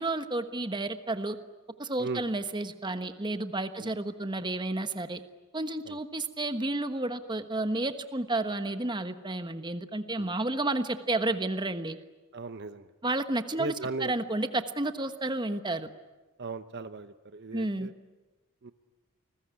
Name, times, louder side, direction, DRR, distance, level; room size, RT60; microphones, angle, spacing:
voice 1, 0.0-1.4 1.8-5.2 5.5-12.0 13.0-13.7 14.0-15.9 17.5-17.9, right 2 dB, 20° right, 9 dB, 1.2 m, -31 dB
voice 2, 12.3-12.9 13.6-14.1 16.4-17.9 18.6-18.7, right 3 dB, 50° right, 11 dB, 0.8 m, -37 dB
29.5 x 20.5 x 9.8 m, 1.2 s
head